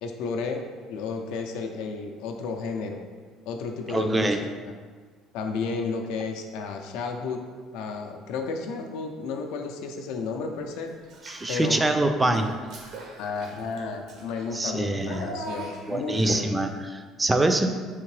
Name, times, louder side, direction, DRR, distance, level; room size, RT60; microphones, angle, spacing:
voice 1, 0.0-3.0 3.5-4.3 4.7-4.8 5.3-7.4 7.7-10.9 11.5-11.8 12.2-12.4 13.2-16.5, left 4 dB, 80° left, 4 dB, 0.4 m, -32 dB
voice 2, 3.9-4.5 11.2-12.6 14.5-15.3 15.9-17.7, right 2 dB, 15° right, 7 dB, 0.3 m, -24 dB
Child speech kid speaking / Bathtub (filling or washing), 11.0-12.0 12.3-16.6, right 2 dB, 65° right, 0.6 m, -41 dB
3.6 x 2.9 x 3.1 m, 1.5 s
supercardioid pair, 90°, 0 cm